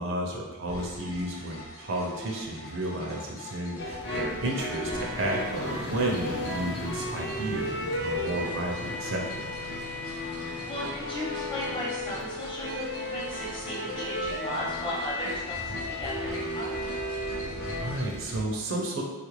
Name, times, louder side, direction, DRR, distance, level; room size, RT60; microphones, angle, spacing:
voice 1, 0.0-9.5 17.2-17.3 17.7-19.0, right 1 dB, 60° right, -1 dB, 0.5 m, -32 dB
sound 1, 0.7-18.4, left 1 dB, 75° left, 0.9 m, -44 dB
sound 2, 3.8-17.9, left 1 dB, 55° left, 0.5 m, -34 dB
voice 2, 10.6-16.8, equal, 25° left, -7 dB, 0.9 m, -36 dB
3.4 x 2.4 x 3.1 m, 1.3 s
head